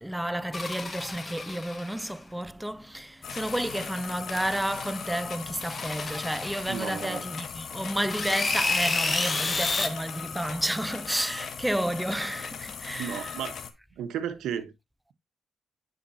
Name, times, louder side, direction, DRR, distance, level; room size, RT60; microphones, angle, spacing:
voice 1, 0.0-13.3, right 1 dB, 5° right, 0.4 m, -31 dB
sound 1, 0.5-2.1 3.3-3.9 4.3-5.1 5.6-7.3 8.1-9.9, left 3 dB, 30° left, 1.3 m, -31 dB
sound 2, 3.2-13.7, left 7 dB, 60° left, 1.3 m, -39 dB
voice 2, 6.7-7.2 13.0-13.6 13.9-14.7, right 9 dB, 80° right, 1.2 m, -33 dB
9.7 x 5.2 x 2.8 m
cardioid pair, 90°, 0 cm